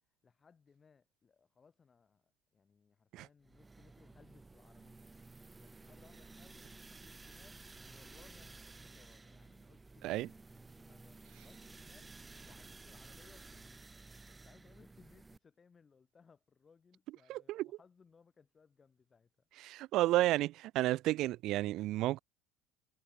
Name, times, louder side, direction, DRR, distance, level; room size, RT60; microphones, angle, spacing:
voice 1, 0.2-5.1 5.6-13.8 14.3-19.5, left 5 dB, 25° left, 5.3 m, -65 dB
sound 1, 3.4-15.4, right 3 dB, 15° right, 0.9 m, -54 dB
voice 2, 17.3-17.7 19.6-22.2, right 16 dB, 65° right, 0.3 m, -32 dB
supercardioid pair, 110°, 0 cm